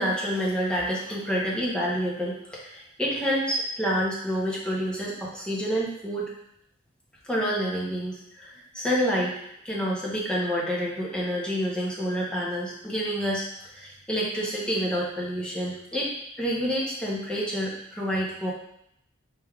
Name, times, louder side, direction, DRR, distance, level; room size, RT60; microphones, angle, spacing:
voice 1, 0.0-6.3 7.3-9.4 9.6-13.4 13.7-16.1 16.4-18.5, equal, 5° left, -5 dB, 0.8 m, -28 dB
4.6 x 3.4 x 2.4 m, 0.75 s
head